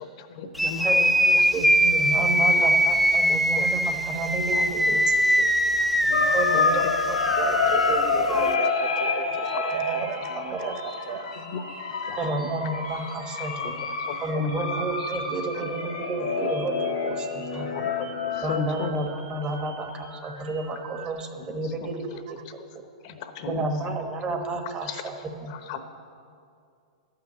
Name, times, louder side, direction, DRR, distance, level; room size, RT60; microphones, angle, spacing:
voice 1, 0.2-0.9 3.6-3.7 4.5-4.6 6.0-6.7 9.5-9.6 11.5-11.6 12.1-12.3 13.4-13.7 14.1-14.7 17.5-18.1 18.5-18.9 21.4-21.5 23.0-23.7 24.9-25.0 25.5-25.8, left 6 dB, 55° left, 8 dB, 1.0 m, -36 dB
sound 1, 0.5-8.5, equal, ahead, 0.4 m, -22 dB
voice 2, 0.8-5.4 6.3-7.6 9.2-9.3 9.6-10.7 12.2-13.8 14.2-17.7 18.4-22.4 23.4-25.5, right 2 dB, 25° right, 5 dB, 1.1 m, -31 dB
sound 2, 6.1-18.6, left 4 dB, 90° left, 1.2 m, -28 dB
voice 3, 7.4-11.3 15.5-15.6, right 8 dB, 50° right, 9 dB, 0.6 m, -35 dB
sound 3, 8.1-21.1, right 4 dB, 85° right, 2.9 m, -46 dB
11.5 x 5.8 x 8.0 m, 2.4 s
hypercardioid pair, 135°, 4 cm